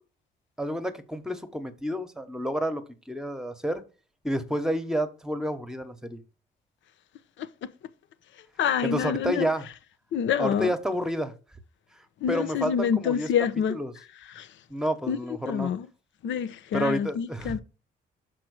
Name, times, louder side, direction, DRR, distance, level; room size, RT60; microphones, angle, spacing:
voice 1, 0.6-3.8 4.2-6.2 8.8-9.6 10.4-11.3 12.3-13.3 13.7-13.9 14.7-15.7 16.7-17.6, equal, 5° right, 1.2 m, -29 dB
voice 2, 8.6-9.5 10.1-10.7 12.2-13.8 14.3-14.5 15.1-15.2 15.4-15.9 16.2-17.6, left 8 dB, 75° left, 0.8 m, -27 dB
6.0 x 4.7 x 6.3 m
cardioid pair, 90°, 20 cm